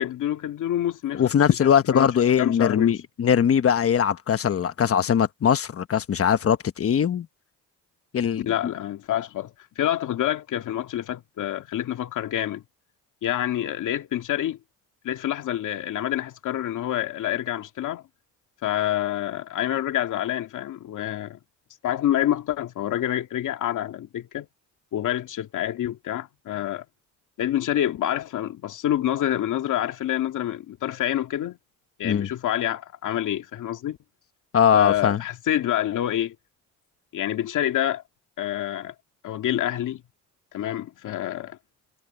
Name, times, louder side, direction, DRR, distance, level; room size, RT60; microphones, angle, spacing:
voice 1, 0.0-1.3 1.6-2.1 2.4-3.0 8.5-12.6 13.2-14.6 15.0-18.0 18.6-21.4 21.8-24.5 24.9-26.8 27.4-31.6 32.0-34.0 34.7-36.3 37.1-38.0 38.4-38.9 39.2-40.0 40.5-41.6, left 12 dB, 70° left, 2.3 m, -27 dB
voice 2, 1.1-7.3 8.1-8.5 32.0-32.3 34.5-35.2, left 8 dB, 45° left, 1.2 m, -21 dB
cardioid pair, 95°, 32 cm